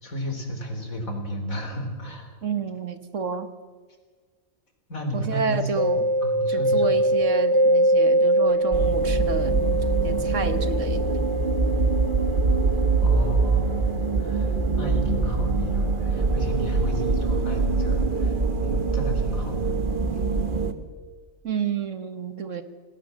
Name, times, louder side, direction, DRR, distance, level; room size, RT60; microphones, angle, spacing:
voice 1, 0.0-2.3 4.9-6.9 13.0-18.4 18.6-19.8, equal, 75° left, 4 dB, 4.6 m, -33 dB
voice 2, 2.4-3.5 5.1-6.1 6.5-9.8 10.0-11.2 21.4-22.6, right 5 dB, 65° right, 10 dB, 1.8 m, -30 dB
Mallet percussion, 5.8-15.3, right 1 dB, 40° left, 1.3 m, -24 dB
sound 1, 8.7-20.7, right 3 dB, 40° right, 1.6 m, -24 dB
27.5 x 18.5 x 7.4 m, 1.5 s
omnidirectional pair, 1.4 m